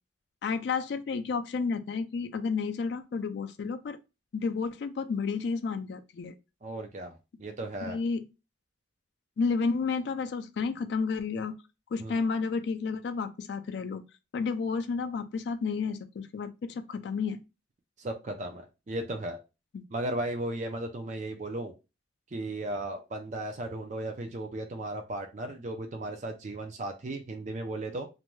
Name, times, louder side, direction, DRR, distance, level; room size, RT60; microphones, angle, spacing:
voice 1, 0.4-4.0 4.3-6.3 7.9-8.2 9.4-11.5 11.9-14.0 14.3-17.4 19.7-19.8, left 5 dB, 65° left, 0.3 m, -31 dB
voice 2, 6.6-8.0 12.0-12.2 18.0-19.4 19.9-21.7 22.3-28.1, right 1 dB, 40° right, 0.4 m, -35 dB
2.6 x 2.2 x 3.1 m
head